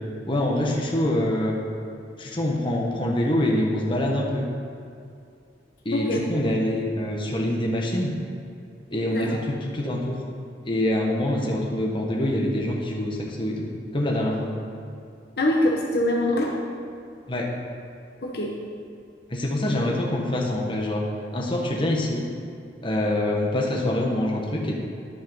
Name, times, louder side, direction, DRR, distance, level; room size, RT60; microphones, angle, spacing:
voice 1, 0.3-1.6 2.2-4.4 5.8-8.1 8.9-10.2 10.6-13.7 13.9-14.5 17.3-17.5 19.3-21.0 21.3-22.3 22.8-24.7, left 1 dB, 30° left, -1 dB, 1.2 m, -25 dB
voice 2, 5.9-6.2 9.1-9.4 15.4-16.6 18.2-18.5, left 1 dB, 60° left, 0 dB, 0.9 m, -23 dB
10.5 x 5.7 x 5.6 m, 2.5 s
head